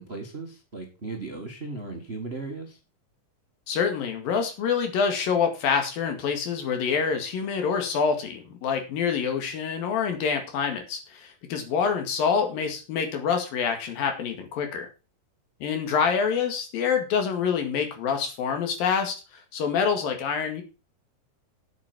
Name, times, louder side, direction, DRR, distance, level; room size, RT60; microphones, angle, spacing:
voice 1, 0.0-2.8, right 3 dB, 30° right, 2 dB, 1.2 m, -36 dB
voice 2, 3.7-14.9 15.6-19.2 19.5-20.6, left 6 dB, 85° left, 5 dB, 3.8 m, -26 dB
8.9 x 8.3 x 6.0 m, 0.31 s
omnidirectional pair, 4.0 m